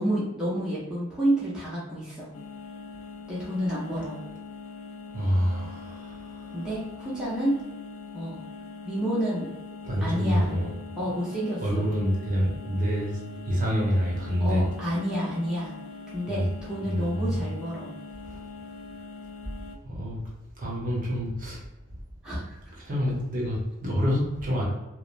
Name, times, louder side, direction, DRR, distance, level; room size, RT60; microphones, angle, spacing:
voice 1, 0.0-2.3 3.3-4.2 6.5-7.6 8.1-8.4 8.8-9.5 10.0-10.5 11.0-11.9 14.4-15.7 16.1-17.9 22.2-22.6, right 1 dB, 5° right, -9 dB, 0.6 m, -29 dB
sound 1, 2.3-19.8, left 4 dB, 75° left, 0.3 m, -42 dB
voice 2, 5.1-6.6 9.8-10.7 11.6-13.2 13.5-14.6 16.3-16.5 16.8-17.4 18.2-18.4 19.8-20.2 20.6-21.6 22.8-24.6, equal, 40° right, -5 dB, 0.8 m, -27 dB
3.0 x 2.0 x 2.5 m, 1.0 s
head